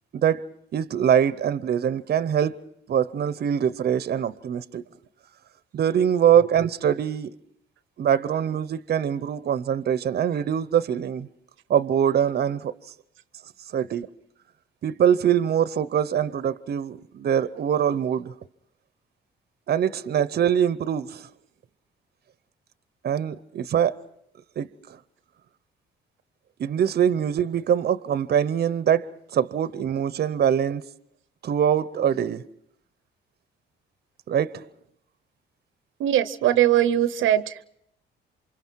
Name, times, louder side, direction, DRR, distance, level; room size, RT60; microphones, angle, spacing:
voice 1, 0.1-2.6 2.9-4.8 5.7-7.4 8.0-11.3 11.7-12.7 13.7-14.1 14.8-18.3 19.7-21.3 23.0-24.0 24.6-24.7 26.6-29.0 29.3-30.8 31.4-32.4 34.3-34.6, right 9 dB, 55° right, 0.8 m, -23 dB
voice 2, 36.0-37.6, right 12 dB, 85° right, 0.8 m, -21 dB
28.0 x 24.5 x 4.6 m
cardioid pair, 90°, 20 cm